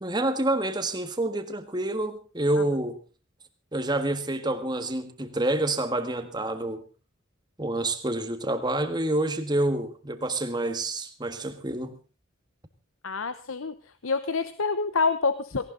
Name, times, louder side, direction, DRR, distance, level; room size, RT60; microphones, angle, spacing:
voice 1, 0.0-3.0 3.7-6.8 7.6-11.9, right 1 dB, 20° right, 9 dB, 1.6 m, -28 dB
voice 2, 13.0-13.7 14.0-15.6, left 4 dB, 90° left, 12 dB, 0.9 m, -27 dB
18.0 x 17.5 x 3.9 m, 0.34 s
head